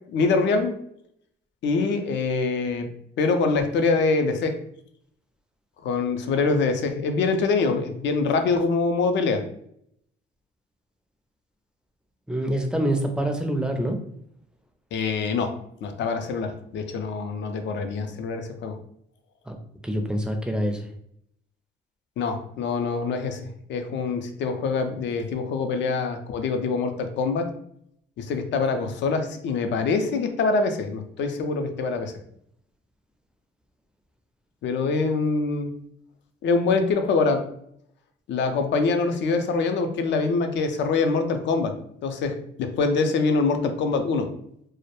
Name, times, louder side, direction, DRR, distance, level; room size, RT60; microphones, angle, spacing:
voice 1, 0.1-0.8 1.6-2.9 3.2-4.6 5.8-9.4 14.9-18.8 22.2-23.4 23.7-27.5 28.2-32.1 34.6-35.7 36.4-37.4 38.3-41.7 42.0-44.3, left 4 dB, 65° left, 7 dB, 0.4 m, -24 dB
voice 2, 12.3-14.0 19.5-19.6 19.8-20.9, right 1 dB, 5° right, 4 dB, 0.4 m, -26 dB
2.2 x 2.0 x 2.9 m, 0.70 s
cardioid pair, 90°, 20 cm